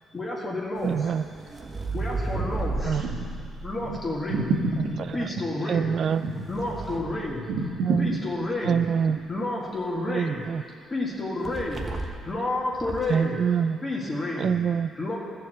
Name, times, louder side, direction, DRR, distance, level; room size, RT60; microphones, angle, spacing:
voice 1, 0.1-1.4 1.9-3.1 3.6-4.5 5.1-5.9 6.5-7.4 8.0-8.8 9.3-10.4 10.9-13.4 13.8-14.6 15.0-15.2, left 2 dB, 25° left, -4 dB, 1.9 m, -30 dB
sound 1, 0.8-4.9 5.8-8.1 11.4-12.3 12.7-13.2, right 2 dB, 30° right, 1.1 m, -34 dB
voice 2, 0.8-1.2 2.8-3.0 5.2-5.3 5.7-6.3 7.8-8.2 8.6-9.2 10.1-10.6 13.1-13.8 14.4-14.9, right 7 dB, 60° right, 14 dB, 0.3 m, -25 dB
voice 3, 2.9-3.4 3.8-4.0 4.3-5.0 5.7-5.8 6.2-6.4 7.5-8.0, right 3 dB, 80° right, 1 dB, 1.3 m, -28 dB
13.5 x 4.7 x 7.8 m, 2.2 s
cardioid pair, 90°, 0 cm